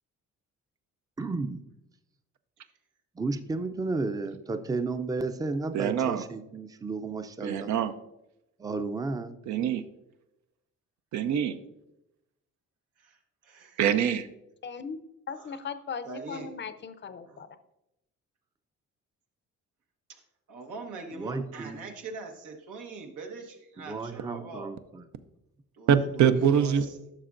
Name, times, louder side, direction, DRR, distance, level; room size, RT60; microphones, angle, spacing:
voice 1, 1.2-1.6 3.2-7.7 8.6-9.4 21.2-21.8 23.9-25.0, right 3 dB, 10° right, 9 dB, 0.5 m, -33 dB
voice 2, 5.7-6.2 7.4-7.9 9.5-9.8 11.1-11.6 13.8-14.3 25.9-26.8, right 8 dB, 70° right, 10 dB, 0.6 m, -24 dB
voice 3, 13.0-13.8 15.3-15.6 16.0-16.5 17.2-17.4 20.1-20.2 20.5-24.7 25.7-26.9, right 3 dB, 85° right, 2 dB, 1.3 m, -43 dB
voice 4, 14.6-15.0 15.3-17.6, left 6 dB, 40° left, 11 dB, 0.5 m, -38 dB
11.5 x 6.1 x 2.5 m, 0.88 s
cardioid pair, 90°, 30 cm